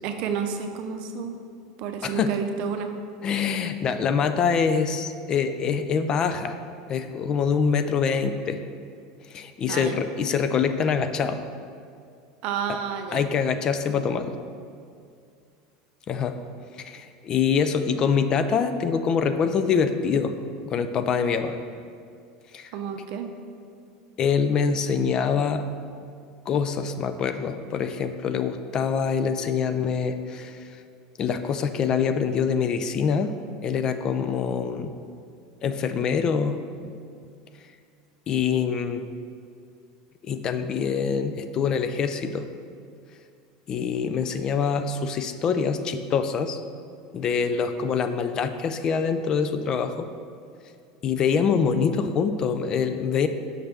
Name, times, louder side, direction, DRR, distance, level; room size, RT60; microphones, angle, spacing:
voice 1, 0.0-1.4 1.8-2.9 9.7-10.0 12.4-13.3 22.7-23.3, right 7 dB, 60° right, 6 dB, 0.6 m, -30 dB
voice 2, 3.2-6.6 6.9-8.6 9.3-11.4 13.1-14.3 16.1-16.4 16.8-20.3 20.6-21.6 22.5-22.7 24.2-25.6 26.5-30.7 31.2-33.3 33.6-34.9 35.6-36.9 38.3-39.0 40.3-42.5 43.7-46.6 47.1-50.1 51.0-53.3, left 6 dB, 35° left, 9 dB, 0.3 m, -25 dB
6.4 x 3.3 x 5.9 m, 2.3 s
supercardioid pair, 125°, 2 cm